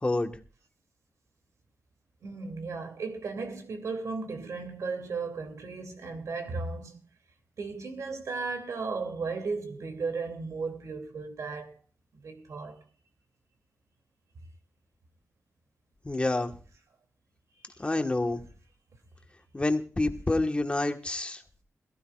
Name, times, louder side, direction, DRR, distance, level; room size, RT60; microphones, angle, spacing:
voice 1, 0.0-0.4 16.0-16.5 17.8-18.4 19.5-21.4, left 2 dB, 20° left, 1.5 m, -28 dB
voice 2, 2.2-7.0 7.6-11.8 12.2-12.8, right 4 dB, 80° right, 2.9 m, -35 dB
22.0 x 15.0 x 2.5 m
wide cardioid pair, 105°, 5 cm